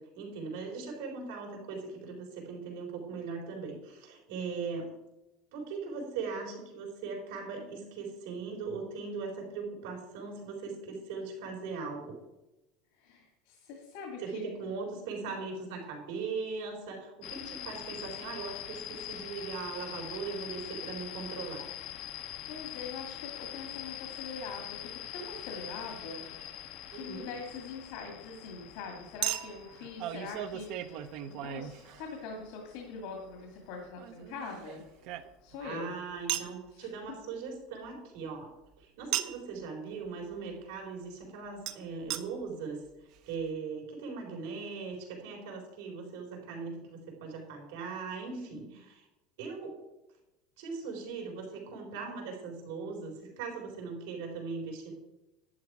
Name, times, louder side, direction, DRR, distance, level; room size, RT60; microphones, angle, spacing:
voice 1, 0.0-4.9 5.5-12.2 14.2-21.7 26.9-27.3 35.6-38.5 38.8-49.1 49.4-49.8 50.6-54.9, right 4 dB, 90° right, 0 dB, 4.1 m, -39 dB
voice 2, 12.9-14.5 22.5-26.3 26.9-34.8 35.4-35.9 36.7-36.9 48.2-48.7, left 4 dB, 75° left, 1 dB, 2.1 m, -43 dB
sound 1, 17.2-33.9, left 12 dB, 55° left, 0.8 m, -44 dB
Chink clink, 26.4-26.5 29.2-32.4 34.0-35.6 36.3-36.6 39.1-39.5 41.7-41.8 42.1-42.2 42.9-43.0 43.1-43.2, right 13 dB, 60° right, 0.8 m, -36 dB
11.0 x 9.4 x 4.9 m, 0.97 s
cardioid pair, 145°, 0 cm